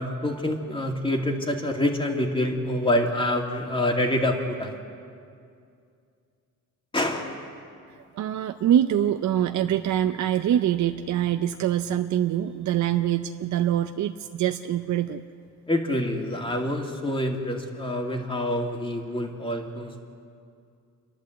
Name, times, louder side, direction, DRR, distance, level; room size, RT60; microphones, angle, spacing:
voice 1, 0.0-4.8 6.9-7.4 15.7-20.0, left 1 dB, 15° left, 2 dB, 2.5 m, -26 dB
voice 2, 8.1-15.2, right 11 dB, 60° right, 7 dB, 0.7 m, -24 dB
29.0 x 11.5 x 8.0 m, 2.4 s
cardioid pair, 120°, 32 cm